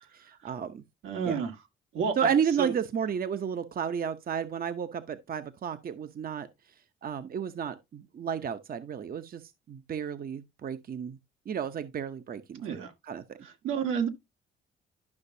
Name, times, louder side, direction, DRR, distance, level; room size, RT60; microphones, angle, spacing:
voice 1, 0.1-0.8 1.2-1.4 2.2-6.5 7.0-9.4 9.7-11.2 11.5-13.4, right 7 dB, 50° right, 0.8 m, -32 dB
voice 2, 1.0-1.6 1.9-2.3 2.6-2.7 12.6-12.9 13.4-14.1, right 6 dB, 90° right, 1.8 m, -30 dB
12.0 x 5.8 x 2.7 m
cardioid pair, 90°, 20 cm